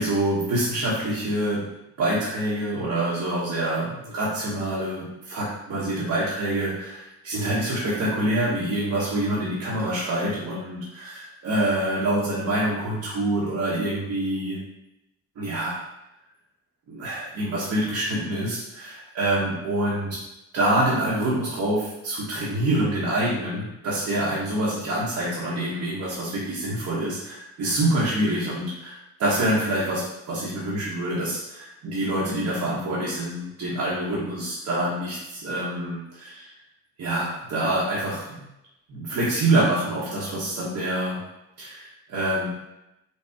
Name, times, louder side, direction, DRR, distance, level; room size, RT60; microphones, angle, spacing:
voice 1, 0.0-1.7 2.0-14.6 15.4-15.8 16.9-20.1 20.5-36.5 37.0-38.4 38.9-41.2 41.6-42.5, right 1 dB, 65° right, -8 dB, 1.1 m, -26 dB
4.2 x 2.3 x 3.5 m, 0.91 s
cardioid pair, 90°, 30 cm